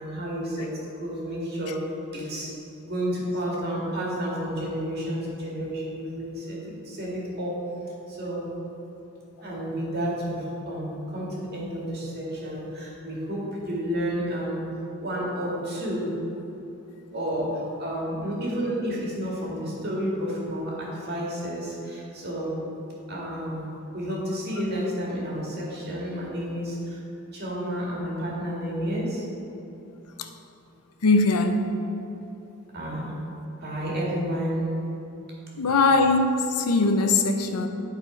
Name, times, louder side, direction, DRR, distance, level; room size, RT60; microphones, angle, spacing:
voice 1, 0.0-1.9 2.1-2.5 2.8-7.6 8.1-8.5 9.4-14.7 15.0-16.1 17.1-22.6 23.1-23.7 23.9-27.0 27.3-29.2 32.7-33.1 33.6-34.7, equal, 45° right, -4 dB, 2.0 m, -31 dB
voice 2, 31.0-31.6 35.6-37.7, left 3 dB, 85° left, 6 dB, 0.6 m, -21 dB
11.0 x 4.2 x 5.0 m, 3.0 s
head